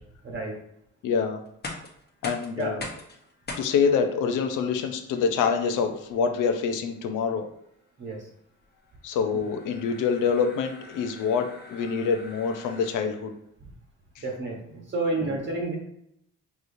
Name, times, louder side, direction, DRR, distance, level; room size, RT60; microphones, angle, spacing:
voice 1, 1.0-1.5 2.2-2.8 3.6-7.5 9.0-13.3 14.2-14.3 15.2-15.3, left 6 dB, 85° left, 6 dB, 0.7 m, -26 dB
sound 1, 1.5-13.3, left 2 dB, 35° left, 1.0 m, -44 dB
voice 2, 14.2-15.8, right 2 dB, 40° right, -1 dB, 1.0 m, -30 dB
4.8 x 3.1 x 2.6 m, 0.76 s
cardioid pair, 90°, 30 cm